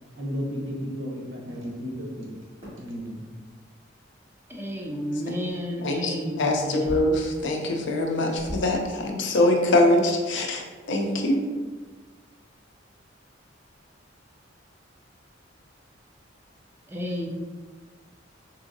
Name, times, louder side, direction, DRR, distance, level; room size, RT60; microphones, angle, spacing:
voice 1, 0.1-2.4 2.8-3.2, equal, 75° right, -2 dB, 0.9 m, -33 dB
sound 1, 2.6-2.9 4.1-4.2 5.4-5.6 6.8-7.3 7.7-7.8 8.3-8.9 9.5-9.6 9.9-10.0 10.3-10.6, equal, 30° right, 1.3 m, -37 dB
voice 2, 4.5-7.0 16.9-17.3, equal, 10° right, 0 dB, 0.3 m, -32 dB
voice 3, 5.8-11.4, left 1 dB, 65° left, 2 dB, 0.5 m, -23 dB
3.6 x 2.7 x 2.6 m, 1.3 s
head